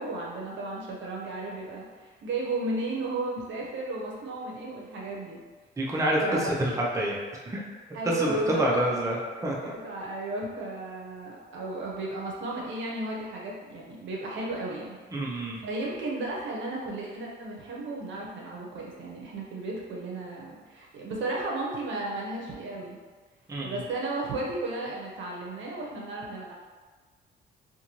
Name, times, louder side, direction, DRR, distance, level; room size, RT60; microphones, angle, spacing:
voice 1, 0.0-5.4 6.2-6.5 7.9-8.8 9.4-15.0 15.3-23.0 23.6-26.5, right 2 dB, 70° right, -3 dB, 0.7 m, -34 dB
voice 2, 5.8-6.2 6.6-7.2 7.5-7.6 8.0-9.2 9.4-9.6 15.1-15.6 23.5-23.8, right 1 dB, 15° right, -3 dB, 0.6 m, -27 dB
2.6 x 2.5 x 2.9 m, 1.4 s
cardioid pair, 90°, 20 cm